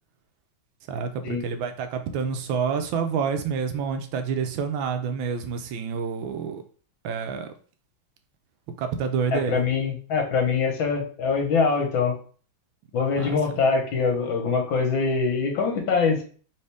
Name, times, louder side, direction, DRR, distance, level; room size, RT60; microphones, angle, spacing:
voice 1, 0.9-6.6 7.0-7.5 8.8-9.6 13.1-13.4, right 6 dB, 80° right, 7 dB, 1.4 m, -28 dB
voice 2, 9.3-12.2 12.9-16.2, left 5 dB, 80° left, 2 dB, 1.8 m, -23 dB
4.2 x 3.0 x 3.4 m, 0.41 s
omnidirectional pair, 2.2 m